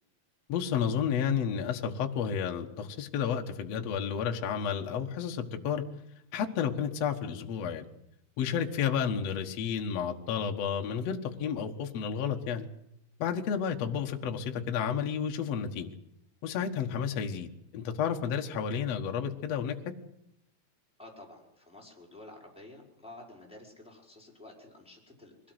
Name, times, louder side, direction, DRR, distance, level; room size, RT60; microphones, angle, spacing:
voice 1, 0.5-5.8 6.3-7.8 8.4-12.7 13.2-15.9 16.4-19.8, left 7 dB, 55° left, 4 dB, 2.2 m, -31 dB
voice 2, 21.0-25.3, left 2 dB, ahead, -2 dB, 5.2 m, -51 dB
23.5 x 17.5 x 8.0 m, 0.79 s
omnidirectional pair, 4.4 m